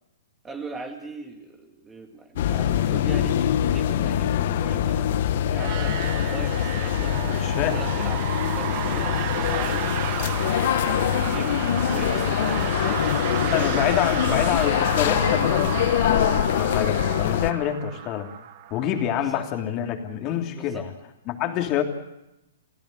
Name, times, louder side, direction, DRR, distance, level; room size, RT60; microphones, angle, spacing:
voice 1, 0.4-3.4 3.6-8.2 8.5-9.9 10.9-14.0 19.1-19.5 20.5-20.9, right 3 dB, 15° right, 4 dB, 2.4 m, -40 dB
sound 1, 2.3-17.5, left 10 dB, 55° left, 1.6 m, -24 dB
sound 2, 5.5-19.2, right 12 dB, 45° right, 1.8 m, -33 dB
voice 2, 7.4-7.8 13.5-18.3 18.7-20.9 21.3-21.8, left 10 dB, 35° left, 4 dB, 3.1 m, -27 dB
29.5 x 16.0 x 7.9 m, 0.91 s
hypercardioid pair, 130°, 0 cm